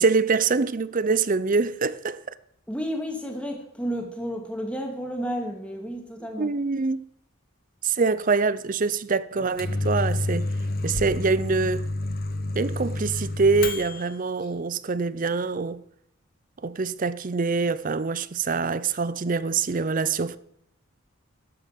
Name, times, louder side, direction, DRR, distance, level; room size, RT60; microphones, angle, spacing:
voice 1, 0.0-2.2 6.4-7.1 7.8-10.5 10.8-11.9 12.5-15.8 16.6-20.4, right 4 dB, 40° right, 0.5 m, -24 dB
voice 2, 2.7-6.5, equal, 5° left, 2.2 m, -31 dB
Microwave oven, 9.3-14.2, left 2 dB, 45° left, 1.2 m, -29 dB
12.5 x 7.8 x 7.5 m
head